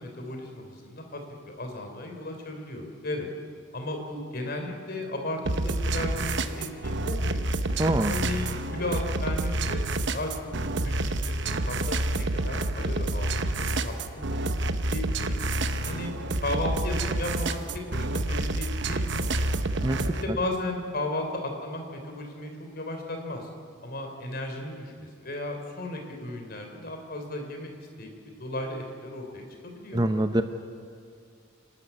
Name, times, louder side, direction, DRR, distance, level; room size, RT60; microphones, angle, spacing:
voice 1, 0.0-3.3 3.7-7.4 7.9-10.5 10.8-15.4 15.8-16.1 16.4-17.6 17.9-19.6 20.1-23.5 23.8-30.1, left 1 dB, 45° left, 4 dB, 3.5 m, -35 dB
sound 1, 5.4-20.2, right 2 dB, 55° right, 1.0 m, -28 dB
voice 2, 7.8-8.1 19.8-20.0 29.9-30.4, right 1 dB, 20° right, 8 dB, 0.7 m, -24 dB
26.5 x 13.0 x 9.6 m, 2.4 s
head